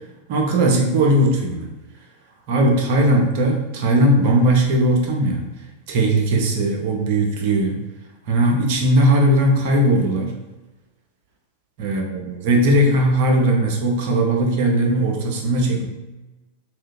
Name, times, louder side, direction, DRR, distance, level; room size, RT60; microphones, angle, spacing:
voice 1, 0.3-1.7 2.5-5.4 5.9-7.8 8.3-10.4 11.8-15.9, right 1 dB, 50° right, 1 dB, 0.6 m, -18 dB
2.7 x 2.3 x 3.6 m, 1.1 s
figure-of-eight pair, 90°, 0 cm